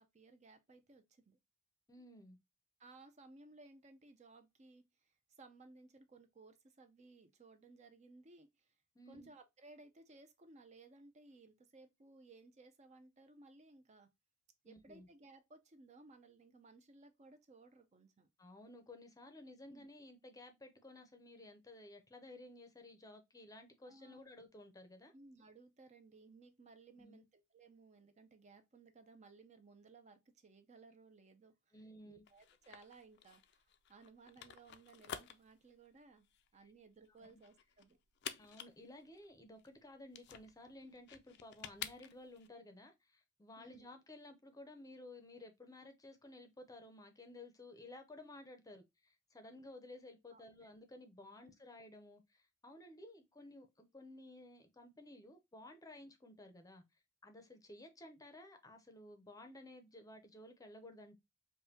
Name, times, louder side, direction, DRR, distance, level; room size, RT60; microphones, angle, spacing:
voice 1, 0.0-1.4 2.8-8.7 9.1-14.1 14.6-18.3 19.7-19.9 23.8-24.2 25.1-31.8 32.0-33.6 33.9-36.3 36.5-38.0 43.6-43.9 50.3-50.7 51.4-51.5, right 3 dB, 35° right, 0.5 m, -60 dB
voice 2, 1.9-2.4 8.9-9.3 14.7-15.1 18.4-25.1 27.0-27.2 31.7-32.2 36.6-36.7 37.2-37.4 38.4-56.8 57.2-61.2, left 2 dB, 20° left, 0.6 m, -55 dB
sound 1, 32.3-42.5, left 9 dB, 60° left, 0.4 m, -51 dB
5.2 x 2.2 x 2.7 m
head